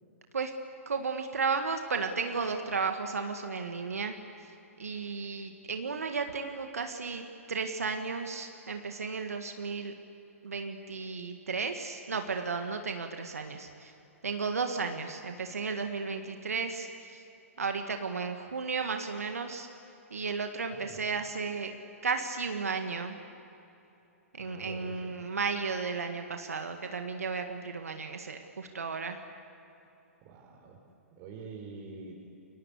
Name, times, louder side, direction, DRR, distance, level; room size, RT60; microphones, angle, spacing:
voice 1, 0.9-4.2 4.8-7.2 7.5-9.9 10.4-13.9 14.2-17.2 17.6-19.7 20.1-21.7 22.0-23.2 24.3-29.2, right 5 dB, 75° right, 5 dB, 1.9 m, -34 dB
voice 2, 20.7-21.1 24.4-25.2 30.2-30.8 31.2-32.2, right 4 dB, 40° right, -2 dB, 4.2 m, -46 dB
29.0 x 23.5 x 8.4 m, 2.9 s
figure-of-eight pair, 115°, 8 cm